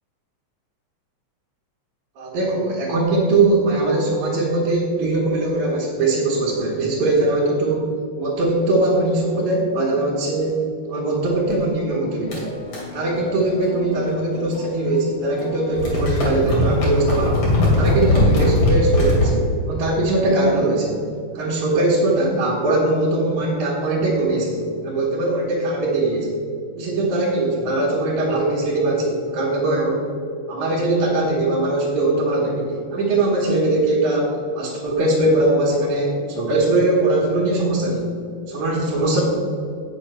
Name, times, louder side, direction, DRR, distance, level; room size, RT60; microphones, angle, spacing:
voice 1, 2.2-7.8 8.2-12.5 12.9-17.4 17.7-20.9 21.3-26.4 26.8-30.1 30.5-38.1 38.5-39.2, right 2 dB, 75° right, -7 dB, 3.0 m, -21 dB
sound 1, 12.3-15.0 15.2-19.3, left 1 dB, 55° left, 3.4 m, -21 dB
8.4 x 7.3 x 5.6 m, 2.4 s
omnidirectional pair, 3.4 m